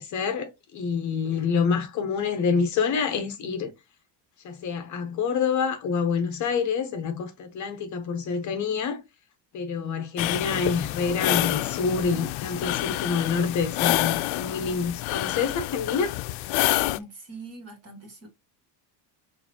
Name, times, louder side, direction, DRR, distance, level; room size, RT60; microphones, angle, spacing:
voice 1, 0.0-3.7 4.4-9.0 9.5-16.1, left 5 dB, 40° left, 0.8 m, -27 dB
sound 1, 10.2-17.0, left 17 dB, 85° left, 0.5 m, -28 dB
voice 2, 16.9-18.3, right 2 dB, 35° right, 1.6 m, -42 dB
6.6 x 2.7 x 2.8 m
cardioid pair, 170°, 45 cm